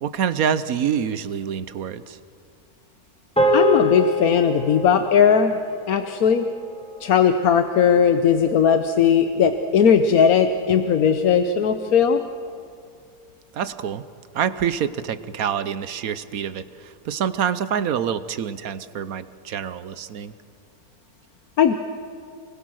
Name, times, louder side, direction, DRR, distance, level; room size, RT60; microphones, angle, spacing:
voice 1, 0.0-2.2 13.5-14.0 14.3-16.7 17.1-20.3, right 8 dB, 70° right, 13 dB, 1.2 m, -26 dB
sound 1, 3.4-7.9, equal, 5° left, 2.4 m, -25 dB
voice 2, 3.5-5.6 5.9-6.5 7.0-12.2 21.6-21.7, left 7 dB, 75° left, 8 dB, 1.3 m, -18 dB
30.0 x 21.0 x 6.3 m, 2.4 s
omnidirectional pair, 1.6 m